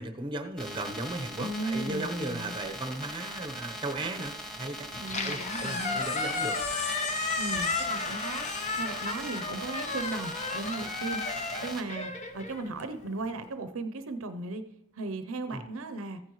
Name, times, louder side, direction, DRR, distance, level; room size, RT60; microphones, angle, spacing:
voice 1, 0.0-4.9 5.2-6.6 15.5-15.6, right 2 dB, 20° right, 7 dB, 0.8 m, -36 dB
sound 1, 0.6-11.8, equal, 5° left, 1.6 m, -41 dB
voice 2, 1.4-2.6 5.0-6.0 7.4-8.5 8.8-11.2 11.6-14.6 14.9-16.2, right 2 dB, 65° right, 10 dB, 0.7 m, -36 dB
Squeak, 4.9-13.2, left 3 dB, 35° left, 0.9 m, -33 dB
15.0 x 9.3 x 3.1 m, 0.85 s
head